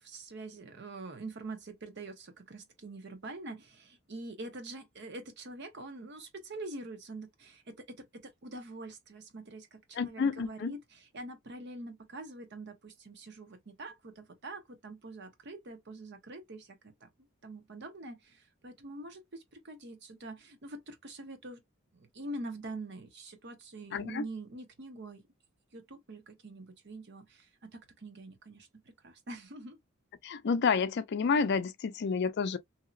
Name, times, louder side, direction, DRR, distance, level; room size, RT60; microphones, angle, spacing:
voice 1, 0.0-17.1 17.4-21.6 21.9-25.2 25.7-29.8, right 2 dB, 55° right, 0.9 m, -45 dB
voice 2, 9.9-10.7 23.9-24.2 30.2-32.6, left 5 dB, 55° left, 0.4 m, -29 dB
2.9 x 2.8 x 2.5 m
head